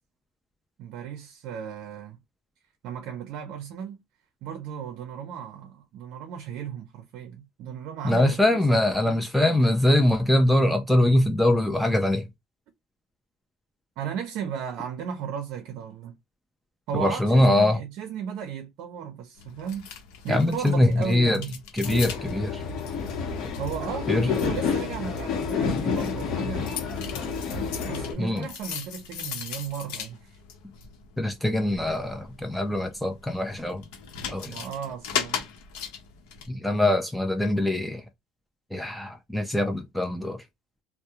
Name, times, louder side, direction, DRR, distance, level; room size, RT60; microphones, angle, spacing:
voice 1, 0.8-2.2 2.8-4.0 4.4-8.4 8.7-8.8 9.1-9.2 14.0-16.2 16.9-19.9 20.2-21.6 23.6-27.2 27.9-30.4 34.4-35.5, right 8 dB, 60° right, 0.5 m, -35 dB
voice 2, 8.0-12.3 16.9-17.8 20.3-21.4 21.7-22.6 24.1-24.3 28.2-28.5 31.2-33.8 34.3-34.6 36.5-38.0 38.7-40.4, left 1 dB, ahead, 0.4 m, -23 dB
sound 1, 19.4-36.5, left 8 dB, 80° left, 0.8 m, -39 dB
sound 2, 21.8-28.1, left 6 dB, 50° left, 0.8 m, -29 dB
2.3 x 2.0 x 2.8 m
cardioid pair, 145°, 0 cm